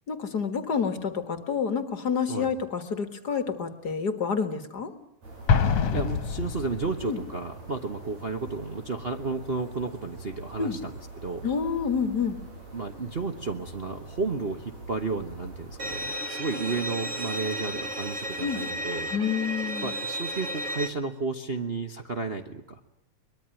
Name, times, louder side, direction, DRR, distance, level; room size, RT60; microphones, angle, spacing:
voice 1, 0.1-4.9 7.0-7.2 10.6-10.8 11.4-12.4 18.4-18.6 19.1-19.9, left 6 dB, 40° left, 9 dB, 1.8 m, -28 dB
sound 1, 5.2-16.1, right 2 dB, 65° right, 7.7 m, -44 dB
Explosion, 5.5-7.1, left 6 dB, 60° left, 2.1 m, -25 dB
voice 2, 5.9-11.5 12.7-19.1 19.8-22.8, right 4 dB, 85° right, 3 dB, 0.5 m, -32 dB
Bowed string instrument, 15.8-20.9, right 1 dB, 30° right, 1.9 m, -33 dB
23.0 x 22.0 x 9.0 m, 0.77 s
omnidirectional pair, 3.3 m